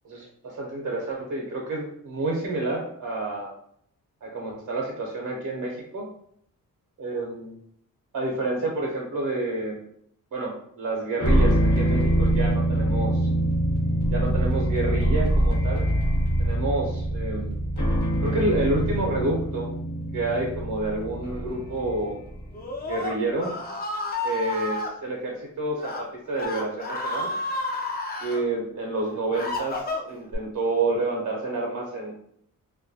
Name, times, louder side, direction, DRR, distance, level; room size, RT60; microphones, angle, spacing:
voice 1, 0.0-3.5 4.2-6.1 7.0-7.6 8.1-9.8 10.3-13.3 14.1-15.9 16.4-17.6 18.2-19.7 20.1-22.2 22.9-23.5 24.2-27.3 28.2-32.1, right 2 dB, 55° right, -1 dB, 0.6 m, -29 dB
sound 1, 11.2-22.6, right 1 dB, 55° left, 1.0 m, -24 dB
Screaming, 22.5-24.9 25.7-26.0 26.3-28.4 29.0-30.4, left 2 dB, 30° left, 0.4 m, -31 dB
2.2 x 2.1 x 2.6 m, 0.68 s
cardioid pair, 90°, 34 cm